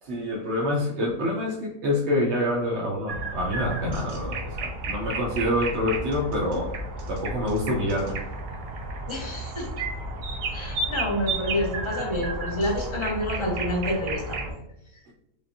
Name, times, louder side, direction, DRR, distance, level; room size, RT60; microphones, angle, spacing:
voice 1, 0.0-6.7 7.1-8.2, left 1 dB, 60° right, -3 dB, 0.7 m, -27 dB
sound 1, 3.1-14.5, right 2 dB, 75° right, 1.2 m, -32 dB
voice 2, 9.1-9.7 10.5-14.6, left 1 dB, 35° left, -1 dB, 0.4 m, -28 dB
5.0 x 2.5 x 2.7 m, 0.82 s
omnidirectional pair, 1.8 m